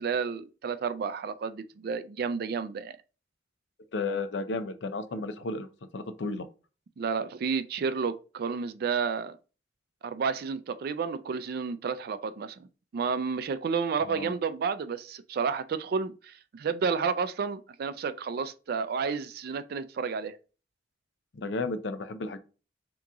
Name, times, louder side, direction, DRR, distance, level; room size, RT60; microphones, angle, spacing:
voice 1, 0.0-2.9 7.0-9.4 10.0-12.7 12.9-20.4, right 5 dB, 60° right, 0.3 m, -31 dB
voice 2, 3.9-6.5 14.0-14.3 21.3-22.4, left 3 dB, 80° left, 0.5 m, -33 dB
3.5 x 2.9 x 3.7 m
head